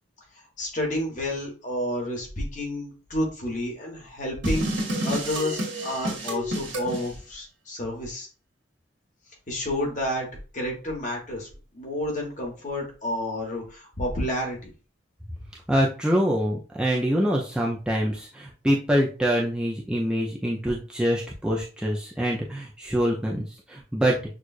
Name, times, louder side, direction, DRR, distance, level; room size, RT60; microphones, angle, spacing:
voice 1, 0.6-8.3 9.5-10.3 10.5-11.5 11.7-14.7, left 1 dB, 40° left, -1 dB, 1.3 m, -30 dB
sound 1, 4.4-7.1, right 1 dB, 85° right, 1.5 m, -29 dB
voice 2, 15.7-23.4 23.7-24.1, equal, 5° right, -3 dB, 0.5 m, -25 dB
6.2 x 2.4 x 2.4 m, 0.36 s
head